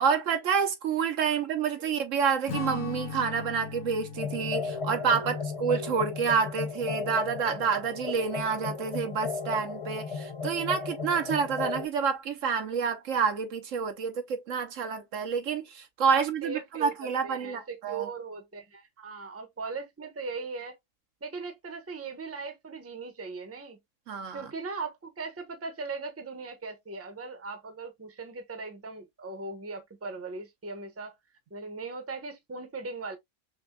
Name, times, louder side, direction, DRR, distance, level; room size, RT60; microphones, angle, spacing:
voice 1, 0.0-18.1 24.1-24.4, right 6 dB, 70° right, 1.1 m, -28 dB
Strum, 2.5-7.1, left 6 dB, 85° left, 1.2 m, -40 dB
sound 1, 4.2-11.9, left 5 dB, 50° left, 0.3 m, -35 dB
voice 2, 16.1-20.8 21.2-23.8 24.3-31.1 31.5-33.2, right 4 dB, 15° right, 0.7 m, -39 dB
6.0 x 2.2 x 2.2 m
omnidirectional pair, 1.4 m